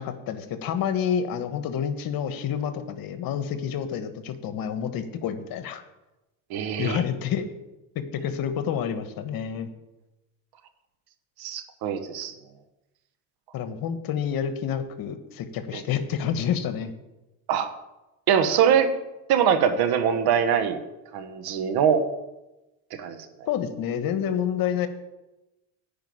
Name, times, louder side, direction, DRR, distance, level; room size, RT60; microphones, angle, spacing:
voice 1, 0.0-5.8 6.8-7.6 7.9-9.7 13.5-16.9 23.5-24.9, left 8 dB, 60° left, 10 dB, 1.3 m, -28 dB
voice 2, 6.5-7.0 11.4-12.3 15.7-15.8 17.5-17.7 18.3-18.9 19.3-20.8 21.1-22.0 22.9-23.2, right 8 dB, 65° right, 9 dB, 1.4 m, -23 dB
10.5 x 5.5 x 8.6 m, 1.0 s
supercardioid pair, 85°, 40 cm